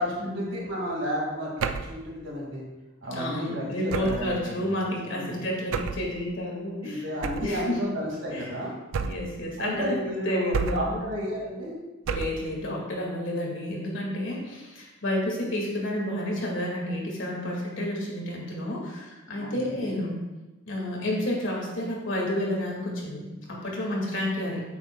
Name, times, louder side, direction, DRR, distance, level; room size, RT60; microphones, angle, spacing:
voice 1, 0.0-2.6 3.0-4.7 5.1-5.4 6.8-8.7 9.6-11.7 19.3-19.9, equal, 65° right, -3 dB, 2.2 m, -32 dB
sound 1, 1.6-2.0 3.9-4.3 5.7-6.1 7.2-7.6 8.9-9.4 10.5-11.0 12.1-12.5, right 5 dB, 85° right, 0.4 m, -30 dB
voice 2, 3.1-7.0 7.4-7.8 8.3-8.5 9.0-9.9 10.3-11.1 12.1-20.1 20.7-24.6, left 1 dB, 65° left, -2 dB, 2.0 m, -30 dB
8.9 x 7.6 x 2.3 m, 1.1 s
head